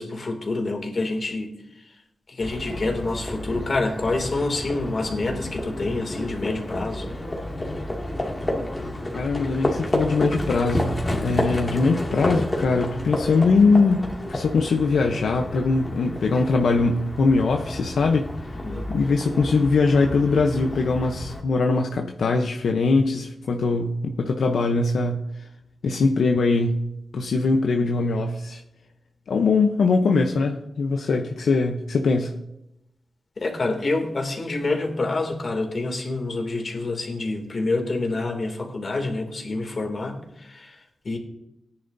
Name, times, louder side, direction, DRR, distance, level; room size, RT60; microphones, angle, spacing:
voice 1, 0.0-1.5 2.3-7.1 18.6-18.8 33.4-40.8 41.0-41.2, left 2 dB, 45° left, 3 dB, 2.6 m, -27 dB
Livestock farm animals working animals, 2.4-21.4, left 1 dB, 25° left, 2.3 m, -30 dB
voice 2, 9.1-18.3 18.9-25.5 25.8-26.9 27.1-28.6 29.3-32.4, left 3 dB, 80° left, 3 dB, 0.8 m, -22 dB
18.5 x 10.0 x 2.7 m, 0.84 s
wide cardioid pair, 90°, 0 cm